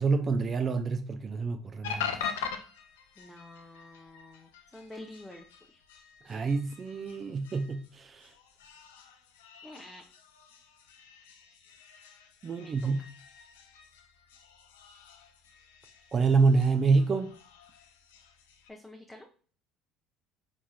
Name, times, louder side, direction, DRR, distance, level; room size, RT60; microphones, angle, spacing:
voice 1, 0.0-2.2 6.2-8.3 12.4-13.0 16.1-17.3, right 4 dB, 35° right, 0.4 m, -27 dB
sound 1, 1.8-18.7, left 7 dB, 75° left, 0.5 m, -44 dB
voice 2, 3.2-5.8 9.6-10.0 12.6-13.1 18.7-19.3, left 1 dB, 10° left, 0.7 m, -48 dB
4.6 x 4.2 x 2.3 m
figure-of-eight pair, 60°, 0 cm